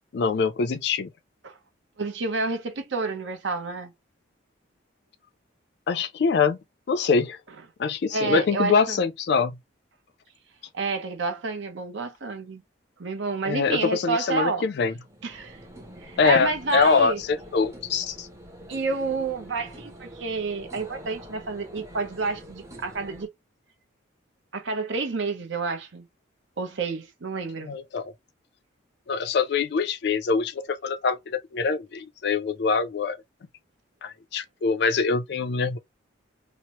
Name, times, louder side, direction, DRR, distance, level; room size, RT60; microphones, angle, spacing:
voice 1, 0.1-1.1 5.9-6.6 6.9-7.4 7.8-9.5 13.4-14.9 16.2-18.3 27.7-28.1 29.1-33.2 34.0-35.8, left 5 dB, 55° left, 0.4 m, -24 dB
voice 2, 2.0-3.9 8.1-9.0 10.7-12.6 13.0-14.7 15.2-15.6 16.0-17.2 18.7-23.3 24.5-26.0 26.6-27.7, right 4 dB, 65° right, 0.7 m, -29 dB
sound 1, 14.7-23.3, equal, 15° right, 0.6 m, -45 dB
2.9 x 2.0 x 2.9 m
head